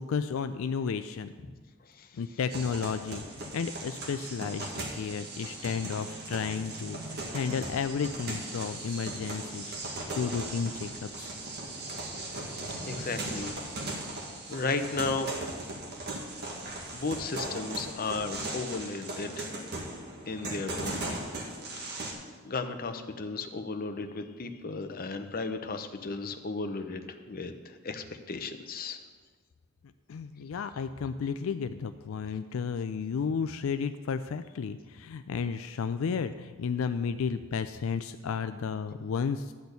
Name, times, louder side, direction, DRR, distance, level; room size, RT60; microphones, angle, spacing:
voice 1, 0.0-1.3 2.1-11.3 30.1-39.5, left 6 dB, 80° left, 10 dB, 0.4 m, -33 dB
sound 1, 2.5-22.1, right 2 dB, 55° right, 1.7 m, -38 dB
voice 2, 12.9-13.5 14.5-15.3 16.9-19.5 20.3-21.2 22.4-29.0, left 3 dB, 45° left, 7 dB, 0.7 m, -34 dB
12.0 x 4.3 x 8.1 m, 1.4 s
head